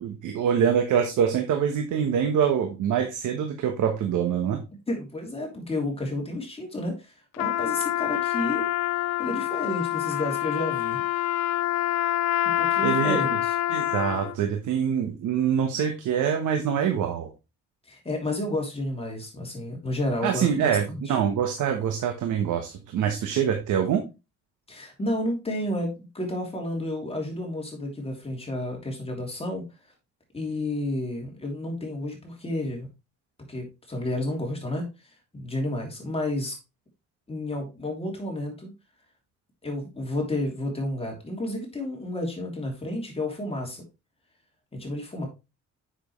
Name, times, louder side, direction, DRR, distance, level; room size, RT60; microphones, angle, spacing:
voice 1, 0.0-4.6 12.8-13.2 13.7-17.3 20.2-24.0, right 8 dB, 80° right, 4 dB, 1.3 m, -25 dB
voice 2, 4.9-8.7 9.2-11.0 12.6-13.6 17.8-21.2 24.7-29.6 30.3-32.9 33.5-36.5 37.3-38.7 39.6-43.8 44.7-45.3, left 1 dB, 20° left, 0 dB, 3.1 m, -31 dB
Trumpet, 7.3-14.4, left 14 dB, 65° left, 0.5 m, -26 dB
7.3 x 6.4 x 3.2 m, 0.27 s
cardioid pair, 90°, 30 cm